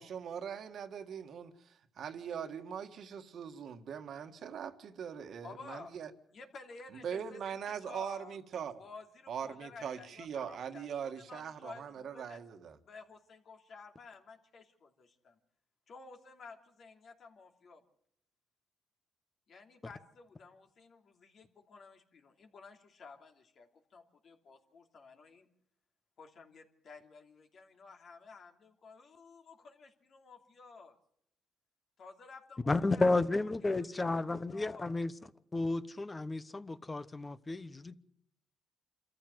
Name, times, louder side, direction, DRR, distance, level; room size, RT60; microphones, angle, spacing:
voice 1, 0.0-6.1 7.0-8.8 9.3-12.8, right 7 dB, 65° right, 1.7 m, -41 dB
voice 2, 5.4-5.9 6.3-7.4 7.7-8.4 8.8-12.4 12.8-15.4 15.9-17.8 19.5-25.5 26.2-31.0 32.0-33.1 33.6-34.8, left 4 dB, 55° left, 3.0 m, -53 dB
voice 3, 32.7-35.1 35.5-37.9, left 2 dB, 25° left, 1.0 m, -32 dB
26.5 x 14.5 x 7.9 m
cardioid pair, 90°, 0 cm